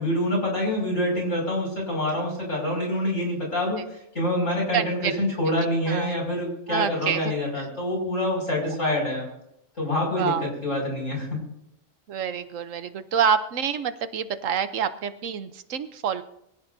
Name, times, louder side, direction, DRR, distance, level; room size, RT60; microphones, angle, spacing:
voice 1, 0.0-3.8 4.1-9.3 9.8-10.3 10.6-11.3, left 1 dB, 65° left, -1 dB, 6.4 m, -26 dB
voice 2, 4.7-5.2 5.5-5.6 5.9-6.1 6.7-7.3 10.1-10.5 12.1-16.2, right 7 dB, 70° right, 11 dB, 1.1 m, -27 dB
23.5 x 16.5 x 2.7 m, 0.77 s
omnidirectional pair, 1.4 m